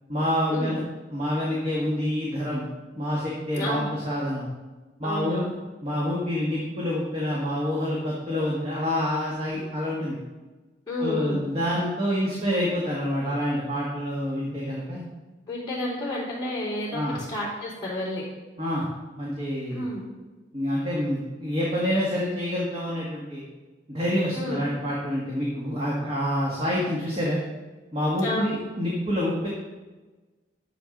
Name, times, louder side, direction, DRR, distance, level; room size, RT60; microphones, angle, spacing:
voice 1, 0.1-0.8 1.1-2.7 3.0-4.5 5.0-5.5 5.8-10.2 11.0-15.0 16.9-17.2 18.6-18.8 19.2-19.8 20.5-23.4 23.9-27.4 27.9-29.5, equal, 35° right, -5 dB, 1.8 m, -27 dB
voice 2, 3.5-3.9 5.0-5.6 10.8-11.4 15.5-18.2 19.7-20.0 24.3-24.6 28.2-28.5, left 1 dB, 15° left, -13 dB, 3.3 m, -30 dB
11.0 x 7.7 x 3.9 m, 1.2 s
head